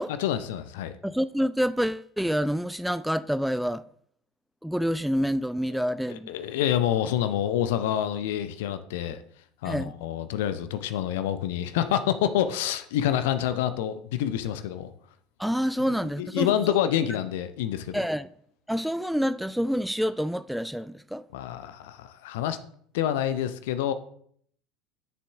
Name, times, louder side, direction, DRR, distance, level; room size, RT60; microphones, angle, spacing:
voice 1, 0.2-0.9 5.7-5.8 6.1-9.2 9.6-14.9 16.2-18.0 21.3-22.6 22.9-23.9, left 10 dB, 60° left, 0.6 m, -27 dB
voice 2, 1.0-3.8 4.6-6.3 9.6-9.9 15.4-16.7 17.9-18.3 18.7-21.2, equal, ahead, 0.3 m, -27 dB
11.5 x 6.9 x 3.5 m
figure-of-eight pair, 70°, 0 cm